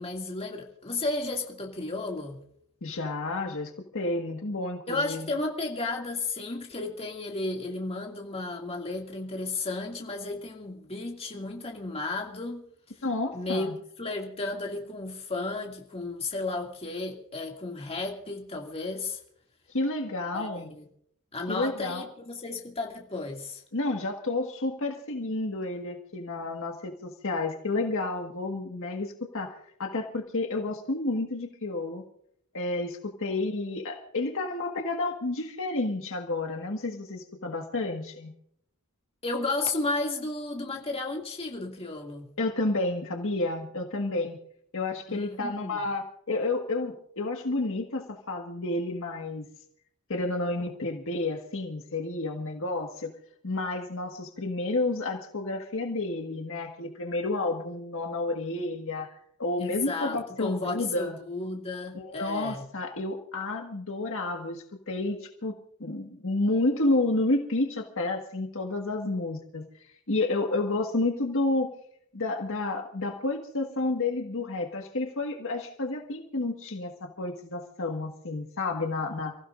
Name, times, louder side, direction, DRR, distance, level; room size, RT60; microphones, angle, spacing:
voice 1, 0.0-2.4 4.9-12.6 13.3-13.7 14.0-19.2 20.3-20.9 21.3-23.6 39.2-42.3 45.1-45.8 59.6-62.6, left 3 dB, 30° left, 2.3 m, -33 dB
voice 2, 2.8-5.3 13.0-13.7 19.7-20.7 21.5-22.1 23.7-32.0 32.5-38.3 42.4-44.4 44.7-49.4 50.1-53.1 53.4-59.1 59.4-61.1 61.9-69.6 70.1-71.7 72.1-79.4, left 2 dB, 65° left, 1.7 m, -30 dB
29.5 x 15.5 x 2.6 m
head